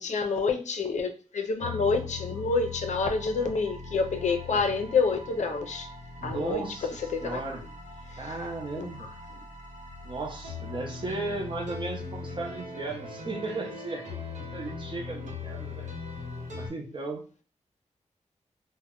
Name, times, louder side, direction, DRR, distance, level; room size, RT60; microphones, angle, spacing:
voice 1, 0.0-5.9 6.2-6.7 7.0-7.6 8.1-8.3 8.8-9.1, left 4 dB, 75° left, 0.5 m, -28 dB
sound 1, 1.6-16.7, left 4 dB, 80° right, 0.9 m, -40 dB
voice 2, 6.2-7.6 8.2-9.1 10.0-14.2 14.5-15.9 16.5-17.2, right 3 dB, 40° right, 0.7 m, -36 dB
2.2 x 2.1 x 3.6 m
wide cardioid pair, 160°, 12 cm